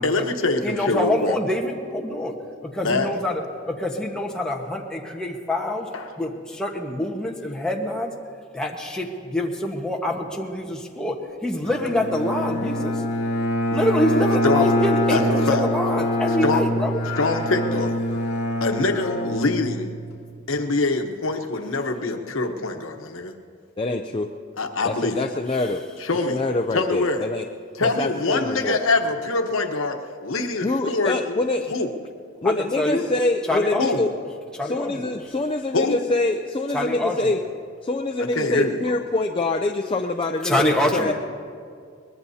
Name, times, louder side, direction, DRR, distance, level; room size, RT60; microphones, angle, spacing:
voice 1, 0.0-1.4 2.8-3.1 5.9-6.1 14.4-14.7 15.1-15.6 16.4-16.6 17.2-18.0 18.6-19.9 20.5-23.3 24.6-25.2 26.0-26.4 26.7-27.3 27.8-30.0 30.2-31.4 31.7-31.9 33.8-34.0 35.7-36.0 38.2-39.0, left 3 dB, 85° left, 5 dB, 1.1 m, -24 dB
voice 2, 0.6-2.3 2.6-3.4 3.7-5.9 6.2-8.1 8.5-13.0 13.7-17.0 32.4-33.1 33.5-34.1 34.6-35.1 36.7-37.4 40.4-41.1, left 1 dB, 5° left, -1 dB, 1.2 m, -25 dB
Bowed string instrument, 11.7-20.1, left 1 dB, 45° left, 3.0 m, -25 dB
voice 3, 23.8-24.3 24.8-25.8 26.3-27.5 28.0-28.8 30.6-31.7 32.4-34.1 34.6-37.4 37.8-41.1, left 2 dB, 25° left, 4 dB, 0.5 m, -25 dB
23.0 x 20.5 x 2.8 m, 2.2 s
head